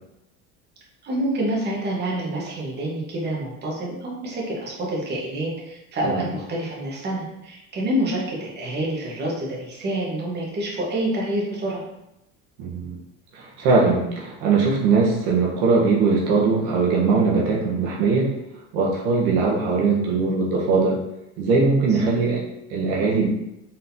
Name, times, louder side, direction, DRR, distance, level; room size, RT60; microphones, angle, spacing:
voice 1, 1.0-11.8 21.9-22.0, right 1 dB, 35° right, -3 dB, 1.3 m, -27 dB
voice 2, 12.6-13.0 13.3-18.3 18.7-21.0 21.4-22.4 22.7-23.3, right 4 dB, 85° right, -3 dB, 1.1 m, -20 dB
4.2 x 3.8 x 2.7 m, 0.85 s
cardioid pair, 120°, 31 cm